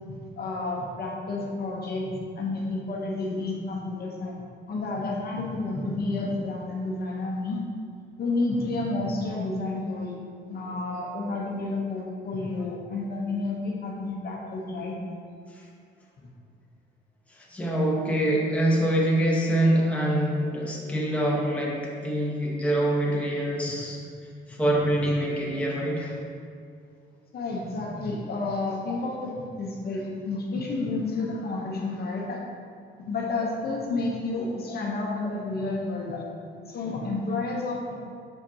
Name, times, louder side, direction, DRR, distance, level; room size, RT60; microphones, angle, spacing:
voice 1, 0.1-4.4 4.7-7.6 8.2-10.1 10.5-15.0 27.3-32.4 33.0-36.2 36.7-37.9, left 2 dB, 50° left, -2 dB, 0.9 m, -30 dB
voice 2, 17.3-24.0 24.5-26.2, right 1 dB, 5° left, -4 dB, 1.1 m, -25 dB
6.6 x 5.0 x 2.8 m, 2.3 s
cardioid pair, 90°, 20 cm